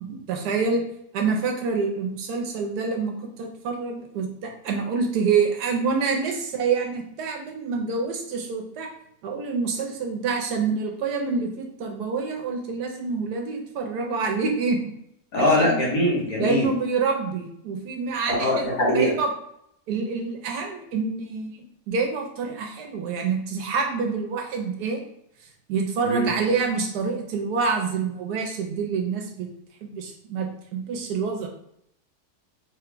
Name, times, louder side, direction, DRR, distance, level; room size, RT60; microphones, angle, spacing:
voice 1, 0.0-0.8 1.1-8.9 9.2-14.8 15.3-15.9 16.4-18.5 18.9-19.3 19.9-21.6 21.9-25.0 25.7-29.5 29.8-31.5, right 5 dB, 80° right, 2 dB, 1.2 m, -27 dB
voice 2, 15.3-16.7 18.4-19.1 26.0-26.3, left 1 dB, 65° left, -4 dB, 1.6 m, -22 dB
3.5 x 2.2 x 3.7 m, 0.73 s
omnidirectional pair, 1.7 m